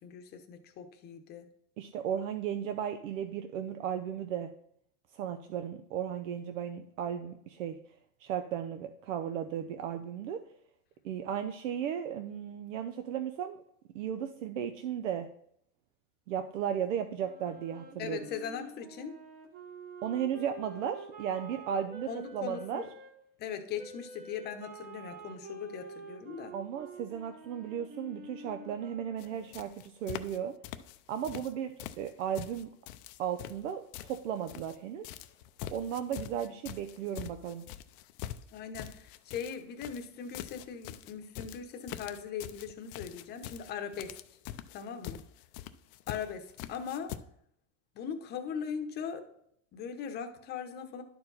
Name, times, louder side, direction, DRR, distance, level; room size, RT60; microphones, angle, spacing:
voice 1, 0.0-1.5 18.0-19.2 22.1-22.9 23.4-26.5 38.5-44.1 44.7-45.2 46.1-47.2 48.0-49.2 49.7-51.0, left 7 dB, 25° left, 6 dB, 0.9 m, -40 dB
voice 2, 1.8-4.5 5.1-7.8 8.2-10.4 11.0-13.6 13.9-15.3 16.3-18.3 20.0-22.8 26.5-30.5 31.1-32.7 33.2-35.0 35.7-37.6, right 9 dB, 85° right, 8 dB, 0.7 m, -35 dB
Wind instrument woodwind instrument, 17.2-23.1 23.8-29.6, right 2 dB, 25° right, 0.9 m, -48 dB
sound 1, 29.2-29.3 29.5-30.4 30.6-31.5 31.8-34.8 35.0-47.2, left 12 dB, 45° left, 0.5 m, -44 dB
11.5 x 4.6 x 4.0 m, 0.70 s
supercardioid pair, 150°, 37 cm